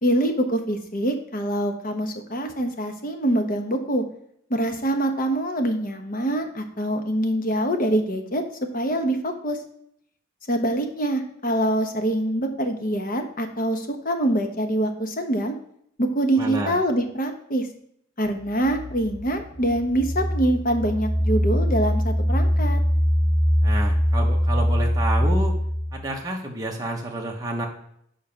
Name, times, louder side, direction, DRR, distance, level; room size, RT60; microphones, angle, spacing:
voice 1, 0.0-4.0 4.5-8.4 8.7-9.6 10.5-15.5 16.0-17.7 18.2-22.8, right 1 dB, 45° left, 5 dB, 1.0 m, -24 dB
voice 2, 16.4-16.8 23.6-25.6 25.9-27.7, right 1 dB, 20° right, -1 dB, 0.9 m, -29 dB
sound 1, 18.2-26.1, equal, 65° left, 3.6 m, -23 dB
7.0 x 5.1 x 5.8 m, 0.69 s
head